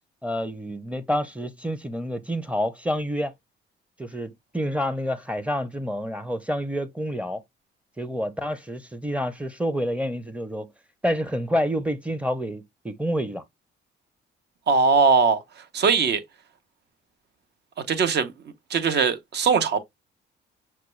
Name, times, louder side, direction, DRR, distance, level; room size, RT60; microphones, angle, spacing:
voice 1, 0.2-3.3 4.0-7.4 8.0-10.7 11.0-13.4, equal, 5° right, 0.6 m, -28 dB
voice 2, 14.7-15.4 15.7-16.2 17.9-18.3 18.7-19.8, right 5 dB, 60° right, 0.8 m, -20 dB
5.7 x 2.3 x 3.1 m
cardioid pair, 90°, 20 cm